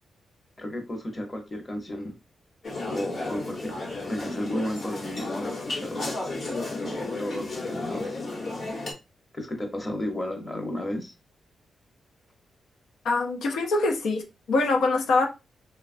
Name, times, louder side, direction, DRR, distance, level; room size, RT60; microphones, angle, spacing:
voice 1, 0.6-2.1 2.9-6.2 6.8-8.2 9.3-11.1, left 1 dB, 25° left, 0.8 m, -33 dB
sound 1, 2.6-8.9, left 2 dB, 55° left, 1.1 m, -33 dB
voice 2, 13.0-15.3, left 3 dB, 90° left, 0.5 m, -24 dB
3.0 x 2.2 x 2.5 m
wide cardioid pair, 120°, 0 cm